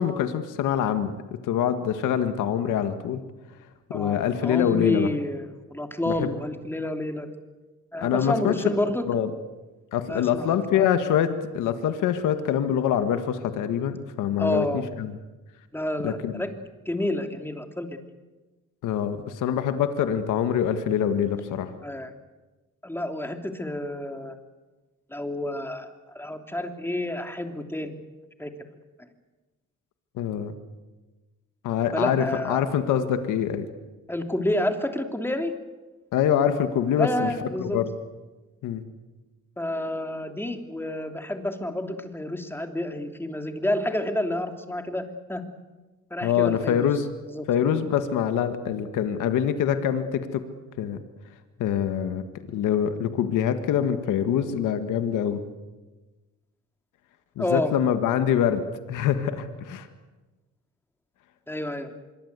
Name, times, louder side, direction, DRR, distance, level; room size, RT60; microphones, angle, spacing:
voice 1, 0.0-3.2 3.9-5.1 6.1-6.3 8.0-8.8 9.0-9.3 9.9-15.1 16.0-16.3 18.8-21.7 30.2-30.5 31.6-33.7 36.1-37.3 37.6-37.9 38.6-38.8 46.2-47.1 47.5-50.4 50.8-51.0 51.6-52.2 52.5-55.4 57.4-59.9, left 9 dB, 85° left, 8 dB, 1.8 m, -25 dB
voice 2, 3.9-7.3 7.9-9.0 10.1-10.8 14.4-14.8 15.7-16.5 16.8-18.0 21.8-22.1 22.8-24.4 25.1-28.0 28.4-28.5 31.9-32.6 34.1-35.5 37.0-37.8 39.6-45.0 45.3-45.4 46.1-46.9 47.3-47.5 57.4-57.7 61.5-61.9, left 1 dB, 5° left, 5 dB, 3.1 m, -29 dB
25.0 x 23.0 x 8.3 m, 1.2 s
cardioid pair, 90°, 30 cm